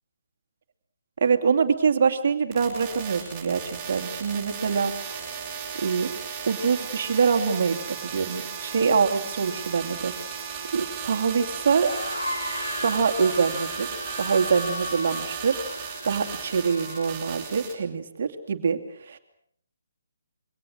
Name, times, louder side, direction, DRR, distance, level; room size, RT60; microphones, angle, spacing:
voice 1, 1.2-4.9 5.8-6.1 6.5-10.1 10.7-11.9 12.8-15.6 16.0-19.2, right 5 dB, 40° right, 5 dB, 2.5 m, -24 dB
sound 1, 2.5-17.7, right 7 dB, 10° right, 7.1 m, -35 dB
sound 2, 11.7-17.2, left 1 dB, 75° left, 6.2 m, -35 dB
27.5 x 24.0 x 6.4 m, 0.68 s
figure-of-eight pair, 140°, 0 cm